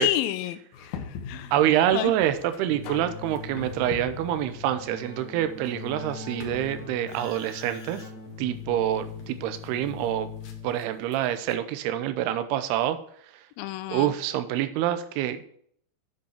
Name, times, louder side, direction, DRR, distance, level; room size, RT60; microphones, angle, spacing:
voice 1, 0.0-1.5 1.9-2.1 13.6-14.1, left 14 dB, 90° left, 10 dB, 2.1 m, -29 dB
sound 1, 0.7-11.5, left 6 dB, 65° left, 2.1 m, -44 dB
voice 2, 1.5-8.0 8.4-10.3 10.6-13.0 13.9-15.5, right 12 dB, 80° right, 10 dB, 2.7 m, -26 dB
Keyboard (musical), 2.7-11.0, left 5 dB, 50° left, 2.6 m, -41 dB
8.6 x 8.1 x 4.5 m, 0.63 s
omnidirectional pair, 4.8 m